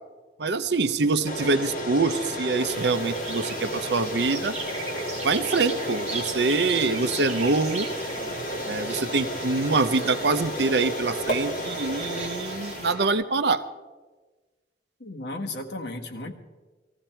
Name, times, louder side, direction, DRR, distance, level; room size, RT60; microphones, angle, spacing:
voice 1, 0.4-4.5 5.2-7.9 8.7-13.7, right 3 dB, 70° right, 12 dB, 0.7 m, -25 dB
sound 1, 0.6-7.5, equal, 25° left, 2.7 m, -50 dB
sound 2, 1.2-13.1, equal, 50° left, 2.0 m, -32 dB
sound 3, 2.7-12.9, right 4 dB, 40° right, 2.0 m, -39 dB
voice 2, 15.0-16.3, left 2 dB, 75° left, 2 dB, 1.6 m, -34 dB
19.0 x 15.0 x 4.5 m, 1.3 s
head